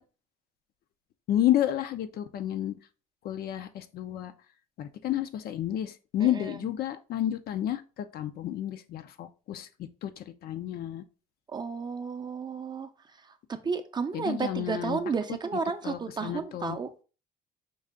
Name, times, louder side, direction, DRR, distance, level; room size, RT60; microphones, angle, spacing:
voice 1, 1.3-2.7 3.2-4.3 4.8-9.7 10.0-11.0 14.1-15.0 15.8-16.8, left 12 dB, 65° left, 0.5 m, -30 dB
voice 2, 6.2-6.6 11.5-12.9 13.6-16.9, right 5 dB, 25° right, 0.5 m, -32 dB
5.4 x 2.5 x 3.6 m
cardioid pair, 110°, 17 cm